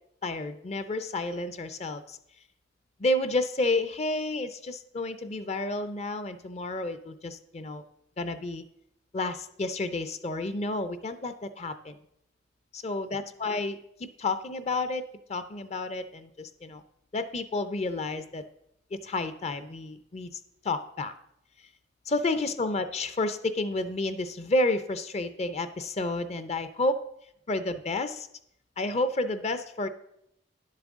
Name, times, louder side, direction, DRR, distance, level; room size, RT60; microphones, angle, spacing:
voice 1, 0.2-2.2 3.0-7.8 8.2-8.6 9.1-12.0 12.7-16.8 17.1-18.4 18.9-20.3 20.6-21.1 22.1-27.0 27.5-28.3 28.8-29.9, left 2 dB, 40° left, 11 dB, 0.5 m, -30 dB
10.5 x 7.4 x 3.6 m, 0.75 s
head